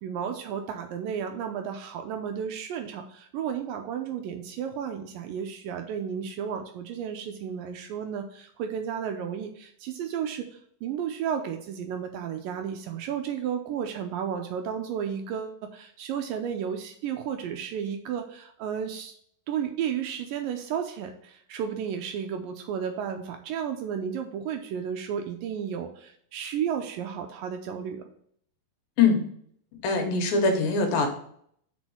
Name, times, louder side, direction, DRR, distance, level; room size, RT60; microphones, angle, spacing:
voice 1, 0.0-19.1 19.5-28.1, right 8 dB, 80° right, 5 dB, 2.1 m, -33 dB
voice 2, 29.8-31.1, left 4 dB, 75° left, 4 dB, 2.7 m, -22 dB
6.1 x 4.4 x 6.0 m, 0.64 s
omnidirectional pair, 4.4 m